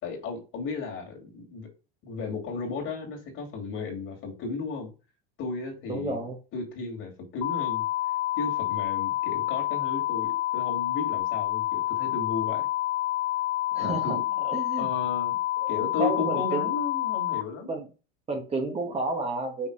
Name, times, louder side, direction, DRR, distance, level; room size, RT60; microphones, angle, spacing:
voice 1, 0.0-1.7 2.0-4.9 5.4-6.3 6.5-7.8 8.4-12.7 13.8-14.5 14.8-15.4 15.7-17.7, left 4 dB, 45° left, 2.8 m, -34 dB
voice 2, 5.9-6.4 13.7-14.2 14.5-14.9 15.6-15.7 16.0-16.7 17.7-17.9 18.3-19.7, right 3 dB, 20° right, 1.3 m, -30 dB
sound 1, 7.4-17.4, left 15 dB, 70° left, 0.9 m, -28 dB
5.9 x 3.9 x 4.8 m
supercardioid pair, 115°, 29 cm